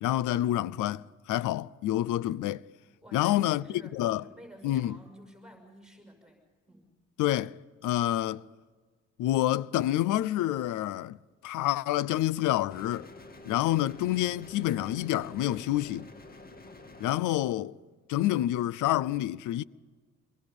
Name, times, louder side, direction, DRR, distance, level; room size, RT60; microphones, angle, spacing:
voice 1, 0.0-2.6 3.1-3.6 3.9-4.2 4.6-5.0 7.2-7.6 7.8-8.4 9.2-11.2 11.4-13.1 13.5-16.1 17.0-17.7 18.1-19.6, left 14 dB, 90° left, 0.6 m, -28 dB
voice 2, 3.0-6.4 6.7-6.9, equal, ahead, 6.3 m, -51 dB
sound 1, 12.7-17.1, left 2 dB, 30° left, 2.1 m, -49 dB
26.5 x 23.0 x 5.4 m
cardioid pair, 90°, 30 cm